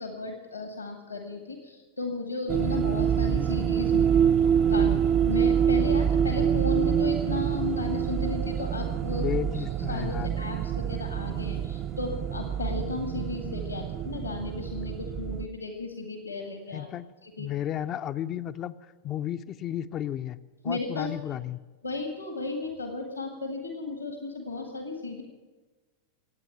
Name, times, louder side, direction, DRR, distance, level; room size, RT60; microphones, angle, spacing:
voice 1, 0.0-4.2 4.7-9.3 9.5-16.9 17.2-17.5 20.6-21.1 21.8-25.2, left 3 dB, 80° left, 3 dB, 1.9 m, -34 dB
sound 1, 2.5-15.5, right 8 dB, 30° right, 0.5 m, -26 dB
voice 2, 9.1-10.4 16.7-17.1 17.4-18.7 19.0-21.6, left 11 dB, 30° left, 10 dB, 0.5 m, -33 dB
25.5 x 9.0 x 5.8 m, 1.3 s
figure-of-eight pair, 90°, 0 cm